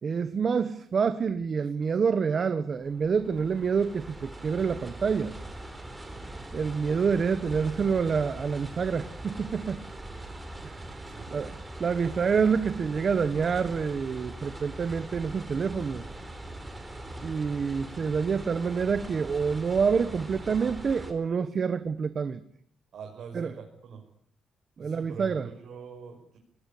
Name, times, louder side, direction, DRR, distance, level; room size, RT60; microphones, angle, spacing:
voice 1, 0.0-5.3 6.5-9.8 10.6-10.8 11.3-16.0 17.2-22.4 23.3-23.5 24.8-25.5, right 6 dB, 35° right, 11 dB, 1.4 m, -27 dB
sound 1, 2.8-21.1, right 1 dB, 10° right, 4.4 m, -41 dB
voice 2, 22.9-24.0 24.8-26.4, right 6 dB, 55° right, 2 dB, 6.1 m, -43 dB
29.0 x 21.0 x 8.6 m, 0.63 s
cardioid pair, 165°, 0 cm